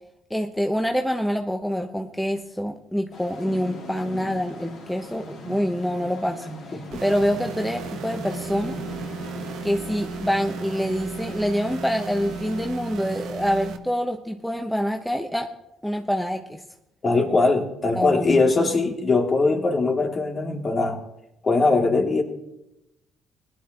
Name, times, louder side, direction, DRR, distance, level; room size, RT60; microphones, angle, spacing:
voice 1, 0.3-8.8 9.6-15.5 15.8-16.6 17.9-18.4, equal, 5° left, 4 dB, 1.1 m, -26 dB
sound 1, 3.1-12.7, left 1 dB, 65° left, 3.8 m, -40 dB
voice 2, 6.7-7.0 17.0-21.0 21.4-22.2, left 3 dB, 35° left, 2 dB, 2.8 m, -21 dB
sound 2, 6.9-13.8, right 5 dB, 65° right, 1.1 m, -35 dB
21.0 x 11.5 x 3.1 m, 0.88 s
hypercardioid pair, 50°, 0 cm